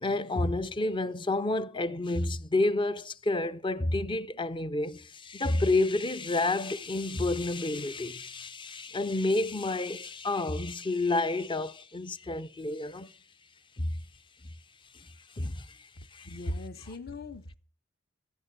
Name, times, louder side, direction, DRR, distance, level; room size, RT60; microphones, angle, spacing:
voice 1, 0.0-13.1 13.8-14.0 14.9-15.1 15.4-15.7 16.1-16.4, left 2 dB, 25° left, 0.6 m, -30 dB
voice 2, 16.2-17.5, left 1 dB, 50° left, 1.0 m, -38 dB
15.5 x 8.4 x 6.7 m
head